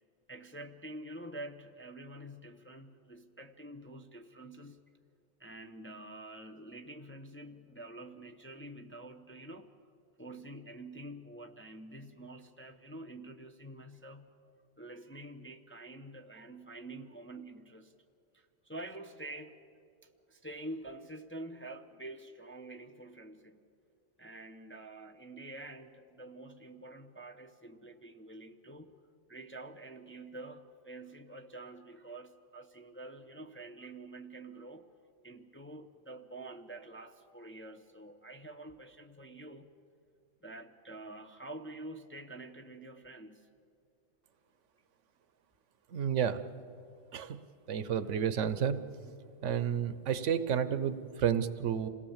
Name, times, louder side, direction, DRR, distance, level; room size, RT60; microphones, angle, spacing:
voice 1, 0.3-4.9 5.4-9.7 10.2-17.9 18.3-19.6 20.3-23.6 24.2-29.0 29.3-34.9 35.2-39.8 40.4-43.5, right 1 dB, 10° left, 4 dB, 0.6 m, -47 dB
voice 2, 45.9-46.4 47.1-47.4 47.7-48.8 49.0-49.1 49.4-51.9, right 8 dB, 70° right, 13 dB, 1.1 m, -31 dB
27.0 x 17.5 x 7.2 m, 2.4 s
omnidirectional pair, 1.3 m